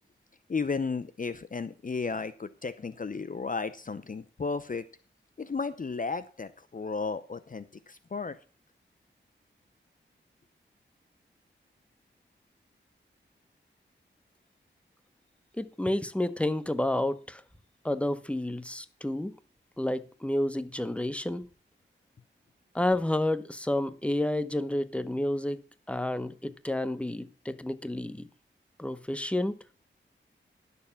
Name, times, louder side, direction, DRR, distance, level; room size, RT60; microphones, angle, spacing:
voice 1, 0.5-4.9 5.4-8.4, left 4 dB, 45° left, 0.7 m, -34 dB
voice 2, 15.6-17.4 17.8-19.3 19.8-21.5 22.7-25.6 25.9-28.3 28.8-29.6, left 1 dB, 5° left, 1.0 m, -30 dB
11.0 x 7.0 x 7.1 m
cardioid pair, 60°, 20 cm